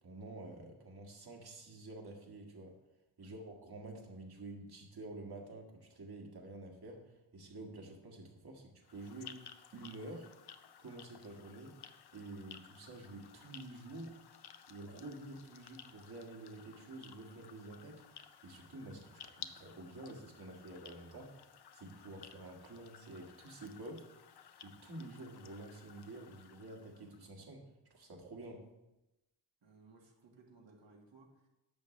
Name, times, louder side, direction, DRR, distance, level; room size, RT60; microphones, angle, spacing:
voice 1, 0.0-2.8 3.2-9.5 9.7-10.3 10.8-11.7 12.1-14.1 14.7-18.0 18.4-21.4 21.7-24.0 24.6-27.6 27.9-28.6, right 2 dB, 60° right, 1 dB, 1.8 m, -49 dB
sound 1, 8.8-27.3, left 8 dB, 60° left, 0.6 m, -56 dB
voice 2, 29.6-31.5, right 3 dB, 75° right, 0 dB, 1.8 m, -61 dB
11.0 x 6.9 x 3.2 m, 0.95 s
cardioid pair, 80°, 44 cm